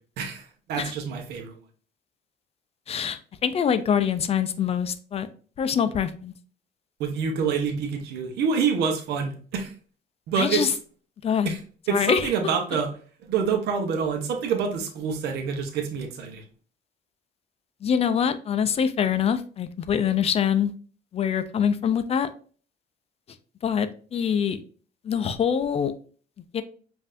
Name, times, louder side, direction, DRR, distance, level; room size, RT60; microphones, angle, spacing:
voice 1, 0.2-1.6 7.0-9.7 10.3-10.6 11.4-11.6 11.9-12.9 13.3-16.4, right 6 dB, 75° right, 3 dB, 0.8 m, -27 dB
voice 2, 2.9-5.3 5.6-6.3 10.4-10.7 11.2-11.6 11.9-12.3 17.8-20.7 21.1-22.3 23.6-24.6 25.0-25.9 26.5-26.6, left 8 dB, 35° left, 11 dB, 0.4 m, -24 dB
5.3 x 2.6 x 2.5 m, 0.41 s
cardioid pair, 110°, 17 cm